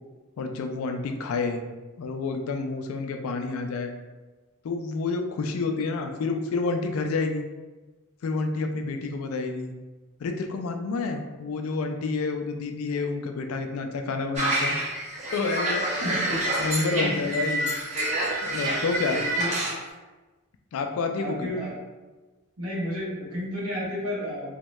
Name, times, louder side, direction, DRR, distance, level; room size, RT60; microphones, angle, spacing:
voice 1, 0.4-1.6 2.0-3.9 4.6-7.5 8.2-9.7 10.2-14.8 15.3-17.8 18.4-19.2 20.7-21.5, left 3 dB, 70° left, 5 dB, 0.3 m, -29 dB
sound 1, 14.4-19.7, right 1 dB, 35° right, 0.7 m, -27 dB
voice 2, 16.0-16.5 17.0-17.3 19.1-19.6 21.1-21.7 22.6-24.6, equal, 80° right, -6 dB, 1.0 m, -32 dB
2.7 x 2.2 x 3.0 m, 1.2 s
head